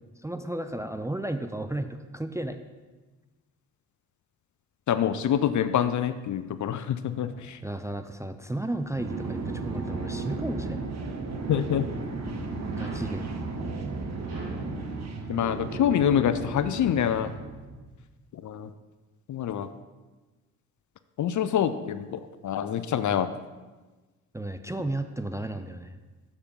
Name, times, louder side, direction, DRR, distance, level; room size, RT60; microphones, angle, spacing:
voice 1, 0.2-2.6 7.6-10.9 12.8-13.2 24.3-25.9, right 1 dB, 5° right, 8 dB, 0.5 m, -33 dB
voice 2, 4.9-7.6 11.5-11.9 15.3-17.3 18.3-18.7 19.3-19.7 21.2-23.3, left 9 dB, 45° left, 12 dB, 0.6 m, -26 dB
sound 1, 7.1-7.8 8.5-9.9 10.6-12.0 12.7-13.2 14.2-14.7 15.7-15.8, right 2 dB, 65° right, 2.5 m, -48 dB
sound 2, 8.9-17.9, right 3 dB, 40° right, 1.3 m, -34 dB
7.1 x 6.7 x 5.5 m, 1.2 s
hypercardioid pair, 50°, 41 cm